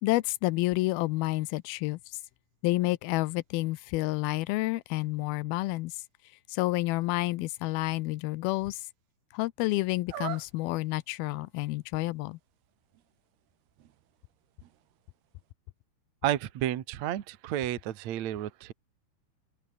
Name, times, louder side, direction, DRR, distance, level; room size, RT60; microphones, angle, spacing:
voice 1, 0.0-2.0 2.6-5.9 6.5-8.8 9.3-12.4, left 19 dB, 90° left, 2.5 m, -29 dB
sound 1, 10.1-10.8 11.4-11.5 11.9-15.5, right 12 dB, 90° right, 3.7 m, -44 dB
voice 2, 16.2-18.7, right 12 dB, 60° right, 2.3 m, -31 dB
open air
omnidirectional pair, 4.4 m